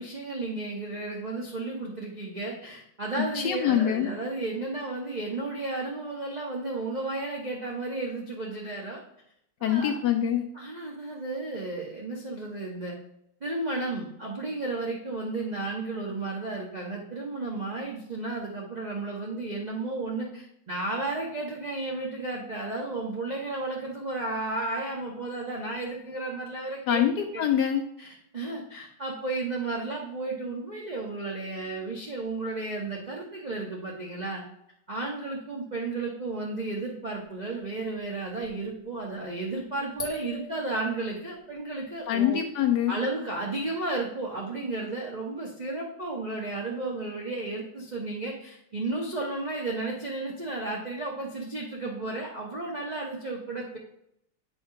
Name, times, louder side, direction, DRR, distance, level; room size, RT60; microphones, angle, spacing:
voice 1, 0.0-9.0 9.6-10.0 10.5-13.0 13.4-27.0 27.3-27.5 28.0-34.4 34.9-42.4 42.9-53.8, right 2 dB, 45° right, -2 dB, 0.5 m, -33 dB
voice 2, 3.2-4.1 9.6-10.5 26.9-27.8 42.1-43.0, left 10 dB, 75° left, 5 dB, 0.9 m, -25 dB
sound 1, 37.8-37.9 38.0-38.7 40.0-41.3, left 1 dB, 35° left, 0.7 m, -38 dB
8.4 x 2.9 x 5.6 m, 0.75 s
omnidirectional pair, 2.3 m